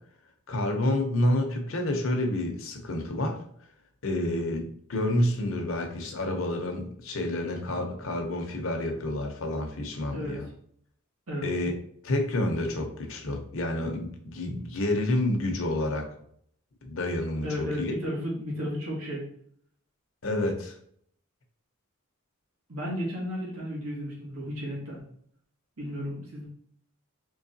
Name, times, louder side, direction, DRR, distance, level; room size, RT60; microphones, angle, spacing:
voice 1, 0.5-3.4 4.0-10.5 11.4-11.8 12.0-16.1 16.8-17.9 20.2-20.8, left 1 dB, 65° left, 3 dB, 0.8 m, -29 dB
voice 2, 17.4-19.3 22.7-25.0 25.8-26.4, equal, 85° right, -5 dB, 1.8 m, -33 dB
4.6 x 3.3 x 2.7 m, 0.64 s
head